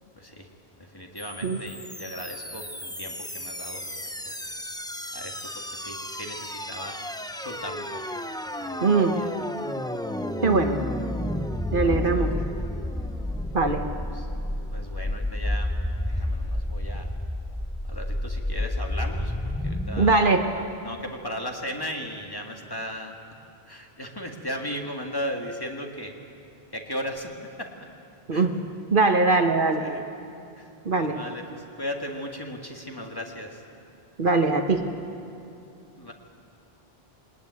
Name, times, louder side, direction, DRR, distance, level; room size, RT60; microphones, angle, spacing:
voice 1, 0.2-0.5 0.8-4.0 4.3-4.4 5.1-7.0 7.4-8.2 8.6-9.5 12.1-12.3 14.1-14.3 14.7-15.7 16.1-17.1 17.9-23.2 23.7-26.1 26.7-27.3 27.6-27.7 28.3-28.5 29.8-30.0 30.6-30.7 31.0-33.6 36.0-36.1, equal, 20° left, 1 dB, 1.9 m, -37 dB
sound 1, 1.2-20.2, left 1 dB, 5° left, 0.6 m, -31 dB
voice 2, 8.8-9.2 10.4-10.8 11.7-12.3 13.5-13.8 20.0-20.4 28.3-28.6 28.9-29.8 30.8-31.2 34.2-34.8, right 3 dB, 55° right, 5 dB, 1.3 m, -21 dB
22.0 x 19.5 x 9.6 m, 2.7 s
omnidirectional pair, 1.1 m